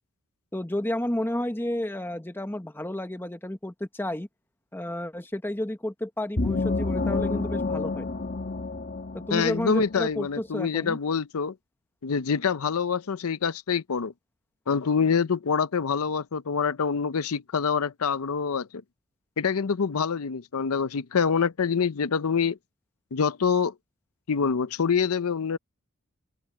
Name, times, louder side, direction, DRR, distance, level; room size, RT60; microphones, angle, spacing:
voice 1, 0.5-4.3 4.7-8.1 9.1-11.0, left 1 dB, 10° left, 1.0 m, -31 dB
sound 1, 6.4-9.9, left 3 dB, 45° left, 1.3 m, -29 dB
voice 2, 9.3-11.5 12.0-14.1 14.7-18.7 19.4-22.6 23.1-23.7 24.3-25.6, left 6 dB, 75° left, 0.6 m, -26 dB
open air
head